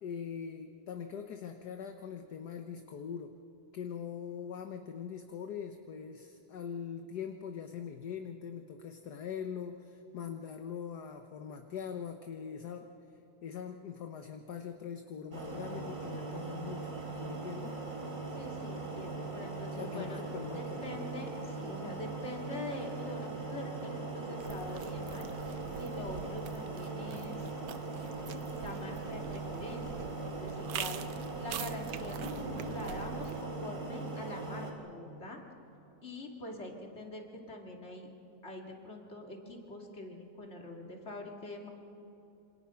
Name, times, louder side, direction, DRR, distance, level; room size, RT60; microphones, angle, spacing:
voice 1, 0.0-3.3 3.7-12.9 13.4-16.9 17.2-17.8 19.7-20.9, left 7 dB, 55° left, 6 dB, 1.5 m, -42 dB
sound 1, 15.3-34.7, right 3 dB, 45° right, 3.6 m, -40 dB
voice 2, 18.3-20.2 20.5-25.3 25.8-27.4 28.5-31.0 31.4-35.4 36.0-38.1 38.4-41.7, left 1 dB, 30° left, 1 dB, 2.9 m, -44 dB
sound 2, 24.4-33.4, right 9 dB, 75° right, 1.7 m, -45 dB
27.0 x 26.5 x 5.8 m, 2.9 s
omnidirectional pair, 2.2 m